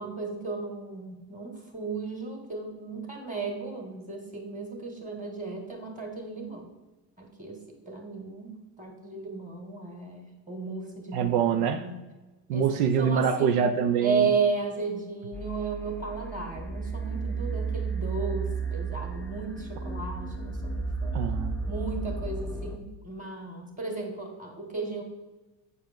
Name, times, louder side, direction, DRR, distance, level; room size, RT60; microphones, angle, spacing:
voice 1, 0.0-6.7 7.2-7.6 7.9-12.0 12.5-12.7 13.0-13.6 14.0-21.1 21.7-25.0, right 4 dB, 15° right, 1 dB, 2.1 m, -34 dB
voice 2, 11.1-11.9 12.5-14.3 21.1-21.6, right 7 dB, 80° right, 8 dB, 0.6 m, -25 dB
sound 1, 15.3-22.8, right 4 dB, 5° left, 0.3 m, -33 dB
8.1 x 4.6 x 3.7 m, 1.2 s
hypercardioid pair, 75°, 47 cm